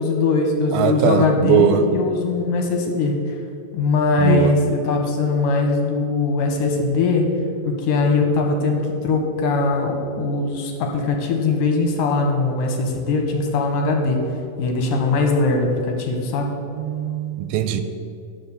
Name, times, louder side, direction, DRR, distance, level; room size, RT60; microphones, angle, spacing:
voice 1, 0.0-3.2 3.7-7.3 7.7-14.2 14.6-16.5, left 3 dB, 75° left, 2 dB, 2.5 m, -20 dB
voice 2, 0.7-1.9 4.2-4.5 16.7-17.8, right 9 dB, 85° right, 10 dB, 2.4 m, -20 dB
10.0 x 5.4 x 6.8 m, 2.4 s
omnidirectional pair, 4.3 m